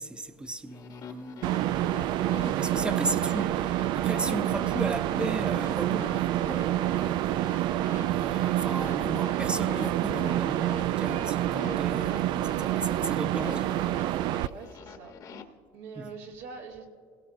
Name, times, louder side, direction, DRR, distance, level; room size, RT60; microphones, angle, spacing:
voice 1, 0.0-1.6 2.3-7.8 8.1-13.9 16.0-16.1, right 2 dB, 10° right, 0.7 m, -36 dB
sound 1, 0.7-15.4, left 7 dB, 45° left, 1.1 m, -45 dB
sound 2, 1.4-14.5, right 14 dB, 60° right, 0.3 m, -27 dB
voice 2, 14.4-15.1 15.7-16.9, right 5 dB, 85° right, 2.5 m, -43 dB
28.5 x 17.0 x 2.6 m
cardioid pair, 115°, 9 cm